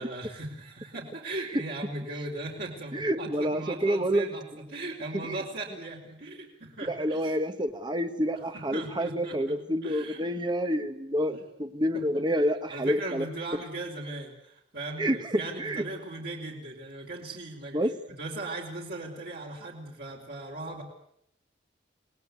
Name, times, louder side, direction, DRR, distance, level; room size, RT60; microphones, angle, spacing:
voice 1, 0.0-7.3 8.4-10.2 11.2-11.4 11.9-12.2 12.7-17.9 18.2-20.8, right 2 dB, 55° right, -2 dB, 4.6 m, -38 dB
voice 2, 2.9-4.3 5.2-5.3 6.9-13.3 15.0-15.8 17.7-18.0, equal, 25° right, 9 dB, 1.4 m, -28 dB
28.5 x 19.5 x 9.5 m, 0.76 s
head